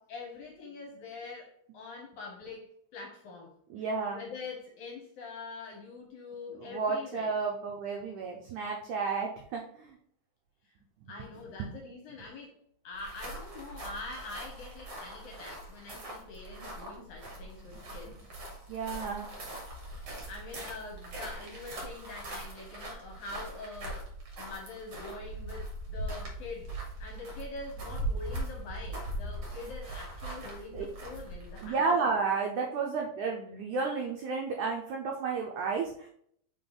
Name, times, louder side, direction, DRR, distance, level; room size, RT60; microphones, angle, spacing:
voice 1, 0.1-2.7 2.9-3.6 4.1-7.4 11.1-12.6 12.8-18.2 20.3-24.1 24.4-26.7 27.0-31.8, left 3 dB, 70° left, 0 dB, 2.0 m, -44 dB
voice 2, 3.7-4.2 6.6-10.0 11.1-11.3 11.6-11.8 18.0-18.2 18.7-19.3 29.6-29.7 30.7-30.8 31.6-36.1, right 4 dB, 90° right, 0 dB, 1.7 m, -32 dB
sound 1, 12.9-31.8, right 1 dB, 60° right, 1.1 m, -41 dB
5.3 x 4.7 x 3.8 m, 0.66 s
omnidirectional pair, 4.4 m